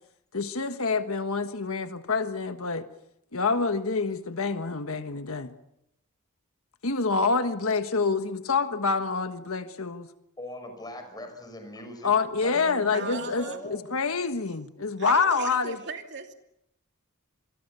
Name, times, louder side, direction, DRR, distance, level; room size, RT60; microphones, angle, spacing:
voice 1, 0.3-2.9 3.3-5.5 6.8-10.1 12.0-15.8, left 4 dB, 70° left, 8 dB, 1.5 m, -27 dB
voice 2, 10.4-12.1 12.4-13.9, left 1 dB, 20° left, 6 dB, 5.8 m, -41 dB
voice 3, 12.9-13.6 15.0-16.3, right 4 dB, 50° right, 4 dB, 2.8 m, -37 dB
26.5 x 23.0 x 6.9 m, 0.80 s
head